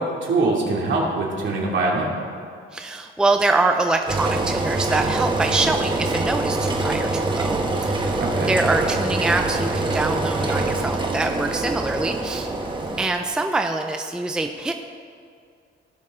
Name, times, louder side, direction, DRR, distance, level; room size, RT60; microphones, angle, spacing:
voice 1, 0.0-2.1 8.2-8.6, right 3 dB, 65° right, -3 dB, 2.5 m, -23 dB
voice 2, 2.7-8.1 8.4-12.5 13.0-14.7, right 2 dB, 5° right, 4 dB, 0.5 m, -24 dB
Engine, 4.1-13.1, right 2 dB, 25° right, 1.1 m, -24 dB
17.0 x 6.5 x 3.7 m, 2.3 s
cardioid pair, 120°, 21 cm